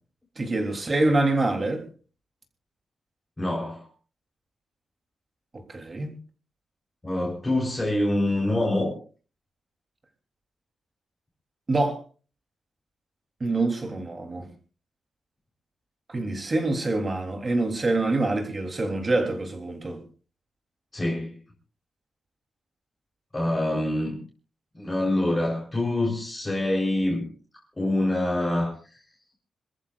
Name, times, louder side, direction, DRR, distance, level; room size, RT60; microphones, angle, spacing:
voice 1, 0.4-1.8 5.5-6.2 11.7-12.0 13.4-14.5 16.1-20.0, right 2 dB, 30° right, 3.5 m, -25 dB
voice 2, 3.4-3.8 7.0-9.0 20.9-21.3 23.3-24.2 24.7-27.3 27.8-29.0, left 1 dB, 15° left, 4.1 m, -25 dB
27.0 x 14.5 x 2.5 m
wide cardioid pair, 130°, 0 cm